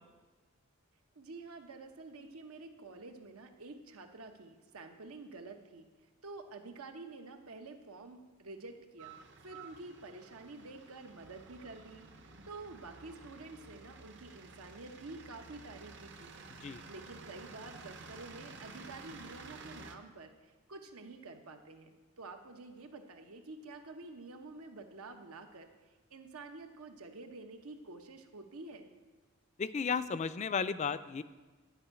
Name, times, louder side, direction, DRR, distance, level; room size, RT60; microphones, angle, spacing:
voice 1, 1.1-5.9 6.2-9.2 9.4-16.5 16.9-25.7 26.1-28.9, right 3 dB, 85° right, 5 dB, 1.0 m, -49 dB
sound 1, 9.0-20.0, right 3 dB, 55° right, 0.8 m, -52 dB
voice 2, 29.6-31.2, left 5 dB, 30° left, 13 dB, 0.3 m, -34 dB
11.5 x 5.5 x 8.1 m, 1.3 s
head